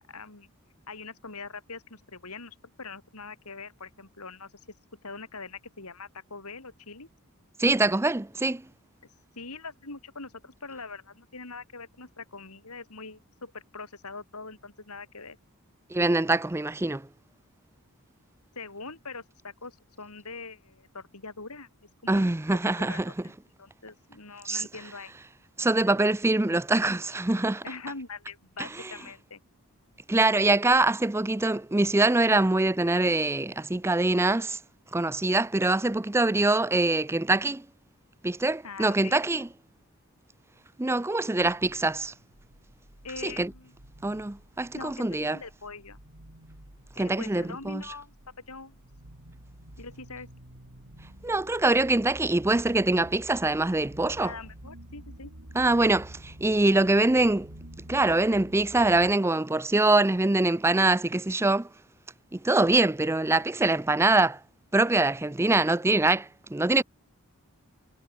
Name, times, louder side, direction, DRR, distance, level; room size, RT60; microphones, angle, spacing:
voice 1, 0.1-0.5 0.9-4.5 5.0-7.1 9.4-15.4 18.6-22.2 22.5-23.3 23.6-25.1 27.6-29.4 38.6-39.5 43.0-43.7 44.7-46.0 47.0-48.1 48.5-48.8 49.8-50.3 54.2-55.3, left 4 dB, 85° left, 5.2 m, -43 dB
voice 2, 7.6-8.6 15.9-17.1 22.1-23.1 24.4-24.7 25.6-27.6 28.6-28.7 30.1-34.6 34.9-37.7 38.2-39.5 40.8-42.1 43.2-43.5 44.0-45.4 47.0-47.9 51.2-54.3 55.6-57.5 57.9-61.7 62.3-64.4 64.7-66.8, right 2 dB, 10° right, 0.5 m, -24 dB
sound 1, 41.4-59.1, right 1 dB, 80° right, 3.8 m, -49 dB
head